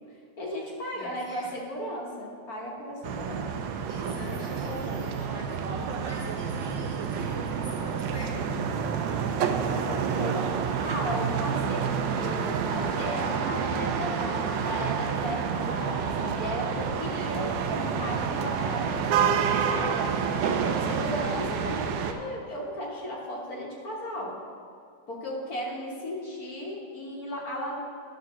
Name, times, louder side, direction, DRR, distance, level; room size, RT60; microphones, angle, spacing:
voice 1, 0.4-3.7 4.1-5.3 9.0-20.0 20.7-24.3 25.1-27.8, left 1 dB, 55° left, -4 dB, 1.6 m, -36 dB
voice 2, 0.9-1.5 3.9-8.5 20.1-20.8, equal, 15° right, -5 dB, 1.8 m, -44 dB
sound 1, 3.0-22.1, right 7 dB, 85° right, 1.3 m, -29 dB
11.0 x 6.6 x 3.7 m, 2.3 s
omnidirectional pair, 2.0 m